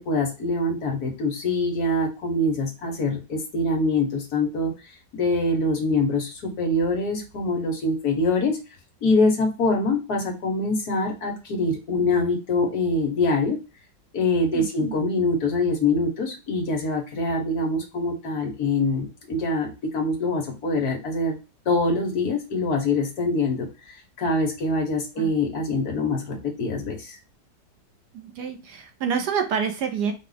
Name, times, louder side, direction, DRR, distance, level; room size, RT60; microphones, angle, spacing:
voice 1, 0.0-4.7 5.1-8.6 9.0-13.6 14.1-21.4 21.6-23.7 24.2-27.2, left 2 dB, 60° left, 2 dB, 1.5 m, -24 dB
voice 2, 14.5-15.0 25.2-25.3 28.1-30.1, right 7 dB, 70° right, 5 dB, 1.3 m, -28 dB
4.8 x 2.4 x 3.9 m, 0.30 s
omnidirectional pair, 1.9 m